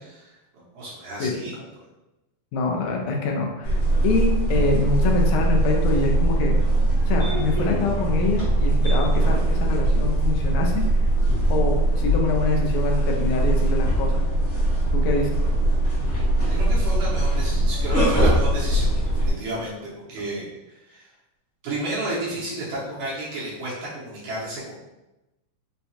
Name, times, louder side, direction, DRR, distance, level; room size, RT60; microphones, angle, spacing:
voice 1, 0.1-1.8 16.5-20.5 20.9-21.1 21.6-24.8, right 1 dB, 75° right, -7 dB, 2.3 m, -32 dB
voice 2, 2.5-3.8 4.0-6.6 7.1-10.9 11.5-14.2 14.9-15.4, left 3 dB, 80° left, 1 dB, 1.9 m, -25 dB
sound 1, 3.6-19.3, right 1 dB, 60° left, 1.0 m, -21 dB
5.6 x 2.2 x 2.7 m, 1.0 s
omnidirectional pair, 3.6 m